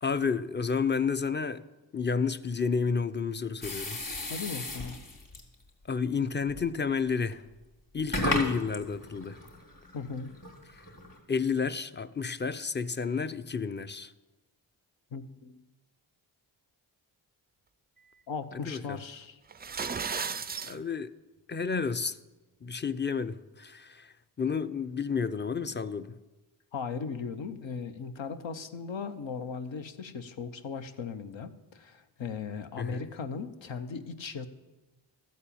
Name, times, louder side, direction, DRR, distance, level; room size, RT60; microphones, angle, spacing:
voice 1, 0.0-1.6 1.9-4.0 5.9-7.4 7.9-9.4 11.3-14.1 18.5-19.0 20.6-21.1 21.5-22.2 22.6-26.1 32.8-33.0, left 5 dB, 25° left, 0.6 m, -31 dB
sound 1, 3.6-5.5 6.4-6.7 7.3-7.4 8.0-11.2, left 1 dB, 40° left, 2.7 m, -35 dB
voice 2, 4.3-5.0 9.9-10.3 15.1-15.6 18.3-19.4 26.7-34.5, left 5 dB, 70° left, 1.0 m, -38 dB
sound 2, 19.5-20.8, right 6 dB, 20° right, 0.3 m, -34 dB
13.0 x 4.4 x 8.6 m
cardioid pair, 45°, 47 cm